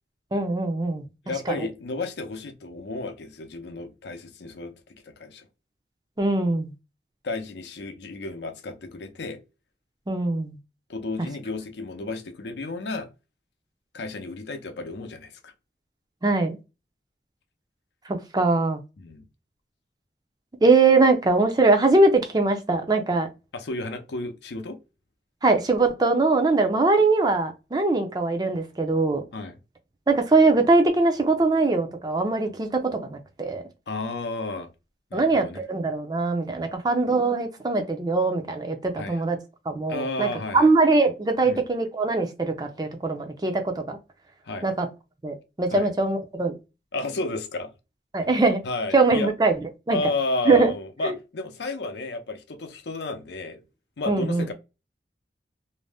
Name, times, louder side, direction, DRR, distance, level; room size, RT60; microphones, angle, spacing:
voice 1, 0.3-1.1 1.5-1.7 6.2-6.7 10.1-10.6 16.2-16.6 18.1-18.8 20.6-23.3 25.4-29.2 30.1-33.6 35.1-39.4 39.7-40.3 40.5-44.0 44.6-44.9 45.2-46.5 48.1-48.6 48.9-49.5 49.9-50.0 50.5-50.7 51.0-51.1 54.1-54.5, right 3 dB, 25° right, 0.4 m, -22 dB
voice 2, 1.2-5.5 7.2-9.4 10.9-13.1 13.9-15.5 19.0-19.3 23.5-24.8 29.3-29.6 33.9-34.7 35.1-35.6 39.0-39.2 39.9-40.7 41.4-41.6 44.4-44.7 45.7-45.9 46.9-47.7 48.6-49.3 49.9-53.6 54.0-54.5, left 2 dB, 75° left, 0.5 m, -32 dB
2.6 x 2.0 x 3.3 m
head